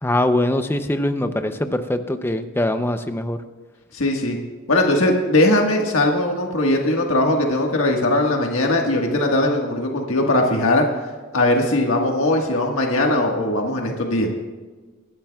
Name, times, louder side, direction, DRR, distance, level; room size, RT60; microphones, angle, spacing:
voice 1, 0.0-3.4, left 1 dB, 10° left, 8 dB, 0.6 m, -22 dB
voice 2, 3.9-4.4 4.7-10.9 11.3-14.3, left 1 dB, 75° left, 1 dB, 1.6 m, -19 dB
25.0 x 11.5 x 2.3 m, 1.3 s
head